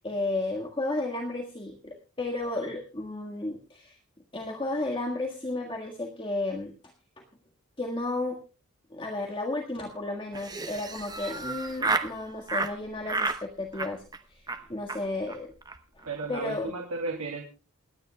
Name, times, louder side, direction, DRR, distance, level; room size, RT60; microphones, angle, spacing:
voice 1, 0.0-4.0 4.3-6.7 7.2-7.3 7.8-8.4 8.9-14.0 14.3-15.5 16.0-16.7, left 2 dB, 20° left, 1 dB, 1.6 m, -33 dB
Laughter, 10.3-12.1 12.5-12.7 13.1-13.4 13.7-14.2 14.5-14.6 14.9-15.0 15.3-15.4 15.6-15.8 16.0-16.4, right 3 dB, 15° right, 0.9 m, -31 dB
voice 2, 16.0-17.4, right 3 dB, 80° right, 0 dB, 2.8 m, -34 dB
28.5 x 10.5 x 2.2 m, 0.34 s
head